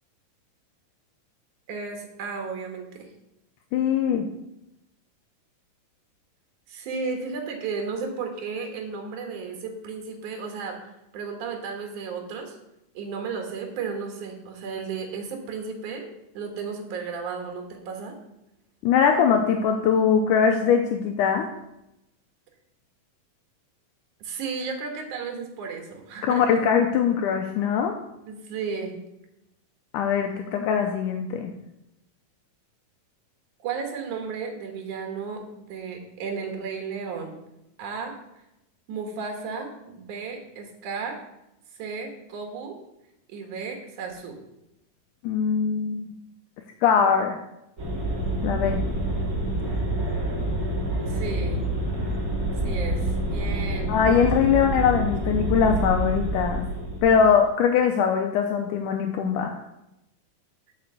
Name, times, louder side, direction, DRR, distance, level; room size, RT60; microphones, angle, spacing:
voice 1, 1.7-3.1 6.7-10.8 11.1-12.6 12.9-16.1 16.3-18.1 24.2-26.4 28.3-29.0 33.6-37.3 37.8-38.1 38.9-41.2 41.8-42.8 43.3-44.4 51.0-51.6 52.6-53.9, right 5 dB, 65° right, 3 dB, 2.9 m, -34 dB
voice 2, 3.7-4.3 18.8-21.5 26.2-28.0 29.9-31.5 45.2-46.0 46.8-47.4 48.4-48.8 53.9-56.6 57.0-59.6, left 7 dB, 80° left, 4 dB, 2.1 m, -21 dB
sound 1, 47.8-57.4, right 1 dB, 30° right, 2.2 m, -27 dB
8.0 x 5.9 x 6.9 m, 0.88 s
omnidirectional pair, 3.9 m